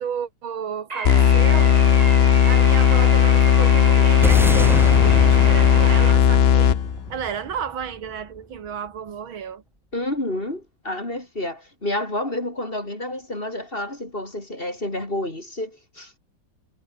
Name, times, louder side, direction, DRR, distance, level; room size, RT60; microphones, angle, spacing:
voice 1, 0.0-1.8 2.2-6.8 7.1-9.6, right 7 dB, 75° right, 2.6 m, -32 dB
sound 1, 0.9-6.1, right 3 dB, 20° right, 1.2 m, -32 dB
sound 2, 1.0-7.1, left 8 dB, 90° left, 0.5 m, -16 dB
sound 3, 4.2-8.7, equal, ahead, 0.6 m, -29 dB
voice 2, 9.9-16.2, left 1 dB, 25° left, 4.3 m, -29 dB
omnidirectional pair, 2.2 m